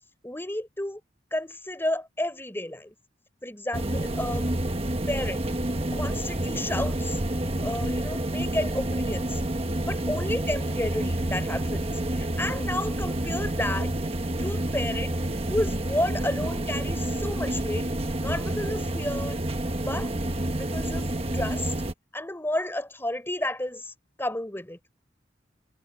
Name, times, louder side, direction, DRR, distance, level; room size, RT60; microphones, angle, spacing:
voice 1, 0.2-1.0 1.3-2.9 3.4-4.5 5.1-5.4 5.8-9.4 9.9-11.8 12.1-13.9 14.4-15.2 15.5-17.9 18.2-19.4 19.9-20.1 20.6-21.7 22.1-23.9 24.2-24.8, left 1 dB, 10° left, 3.9 m, -31 dB
sound 1, 3.7-21.9, right 1 dB, 30° right, 1.3 m, -29 dB
head